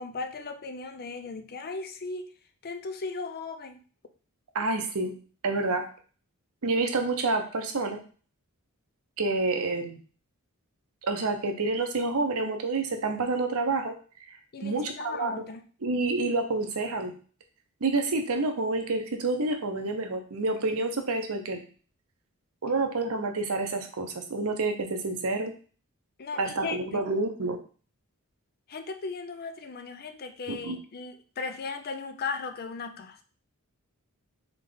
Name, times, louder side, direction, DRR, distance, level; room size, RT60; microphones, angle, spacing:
voice 1, 0.0-2.3 2.6-3.8 14.5-15.6 26.2-27.0 28.7-33.2, left 4 dB, 45° left, 7 dB, 0.5 m, -37 dB
voice 2, 4.5-5.1 5.4-5.9 6.6-8.0 9.2-10.0 11.0-13.9 14.3-14.4 14.6-15.4 15.8-17.1 17.8-21.6 22.6-25.5 26.4-27.6 30.5-30.8, right 3 dB, 70° right, 5 dB, 0.8 m, -28 dB
3.8 x 3.6 x 3.9 m, 0.40 s
head